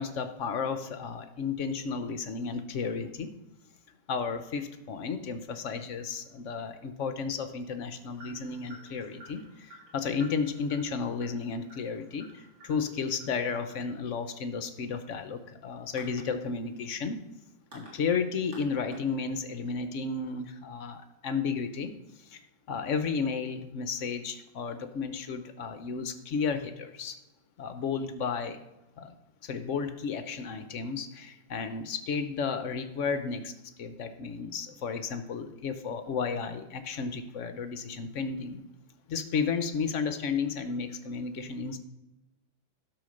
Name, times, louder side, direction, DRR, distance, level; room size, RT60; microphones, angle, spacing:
voice 1, 0.0-3.3 4.1-17.2 17.7-22.4 22.7-27.2 27.6-28.6 29.0-29.2 29.4-33.5 33.8-38.6 39.1-41.8, left 5 dB, 60° left, 9 dB, 0.8 m, -33 dB
sound 1, 8.1-19.6, right 1 dB, 45° right, 3.8 m, -54 dB
12.0 x 5.8 x 6.4 m, 0.98 s
omnidirectional pair, 2.1 m